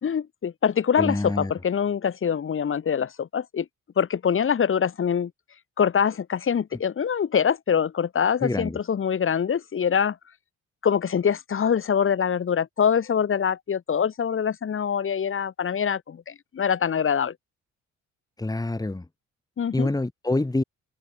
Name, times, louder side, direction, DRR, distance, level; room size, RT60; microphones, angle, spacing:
voice 1, 0.0-3.7 4.0-5.3 5.8-10.2 10.8-17.3 19.6-19.9, left 7 dB, 45° left, 1.8 m, -24 dB
voice 2, 1.0-1.5 8.4-8.8 18.4-19.1 19.7-20.6, left 2 dB, 10° left, 2.8 m, -26 dB
open air
cardioid pair, 90°, 30 cm